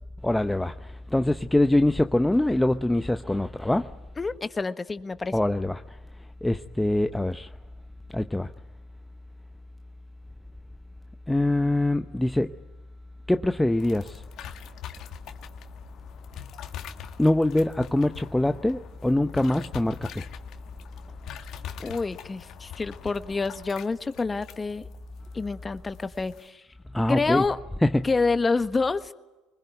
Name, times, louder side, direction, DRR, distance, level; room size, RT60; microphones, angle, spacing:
voice 1, 0.2-3.9 5.3-5.8 6.4-7.5 8.1-8.5 11.3-12.5 13.3-14.2 17.2-20.2 26.9-27.4 27.8-28.1, left 1 dB, 10° left, 0.8 m, -24 dB
voice 2, 4.2-5.3 21.8-24.8 25.3-26.6 27.1-27.6 28.0-29.1, left 4 dB, 25° left, 1.4 m, -27 dB
sound 1, 13.8-26.5, left 10 dB, 60° left, 1.7 m, -43 dB
24.5 x 21.0 x 9.3 m
hypercardioid pair, 75°, 0 cm